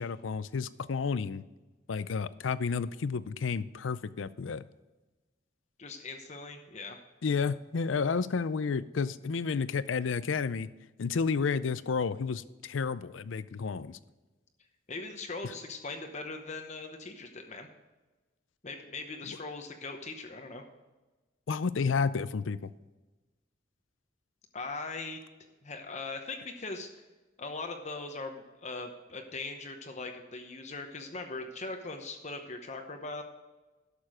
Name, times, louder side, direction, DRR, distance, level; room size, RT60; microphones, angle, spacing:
voice 1, 0.0-1.4 1.9-4.6 7.2-10.7 11.0-14.0 19.3-19.4 21.5-22.7, left 5 dB, 85° left, 16 dB, 0.5 m, -31 dB
voice 2, 5.8-7.0 14.9-17.7 18.6-20.6 24.5-25.2 25.6-27.0 27.4-33.2, left 3 dB, 35° left, 5 dB, 0.9 m, -40 dB
12.0 x 6.9 x 4.9 m, 1.2 s
head